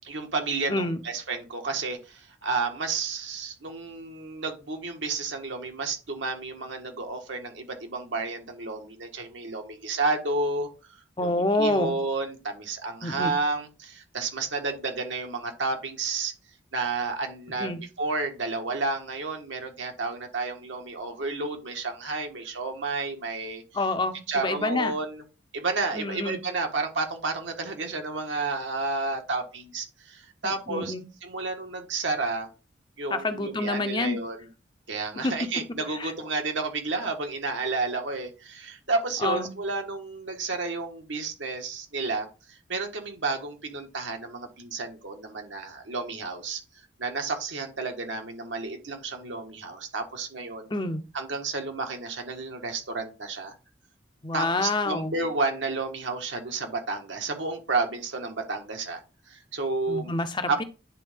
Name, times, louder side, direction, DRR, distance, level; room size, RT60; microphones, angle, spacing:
voice 1, 0.0-10.7 11.2-16.3 16.7-23.6 24.3-25.2 25.5-30.9 31.2-32.5 33.0-34.4 34.9-46.6 47.0-50.7 51.1-53.5 54.3-59.0 59.3-60.1 60.5-60.6, right 3 dB, 80° right, 1.5 m, -31 dB
voice 2, 11.2-11.9 13.0-13.3 17.6-17.8 23.7-24.9 25.9-26.4 30.4-31.0 33.1-34.2 35.2-35.4 35.9-36.1 39.2-39.5 50.7-51.0 54.2-55.1 59.9-60.6, left 2 dB, 25° left, 0.6 m, -27 dB
9.9 x 3.8 x 3.6 m
head